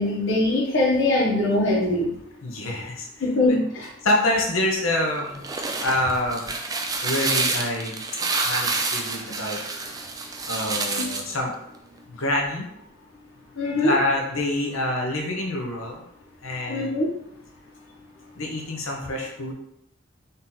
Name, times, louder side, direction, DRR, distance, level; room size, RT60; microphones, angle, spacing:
voice 1, 0.0-2.1 3.2-3.9 11.0-11.1 13.6-14.0 16.7-17.1, left 2 dB, 70° left, -3 dB, 1.2 m, -22 dB
voice 2, 2.4-3.1 4.0-5.4 5.8-6.5 7.0-8.0 8.4-9.6 10.5-11.5 12.1-12.7 13.7-16.0 16.4-16.9 18.4-19.5, left 1 dB, 85° left, 0 dB, 1.0 m, -26 dB
sound 1, 5.2-11.4, right 3 dB, 20° right, 0.3 m, -28 dB
4.0 x 2.8 x 3.9 m, 0.79 s
head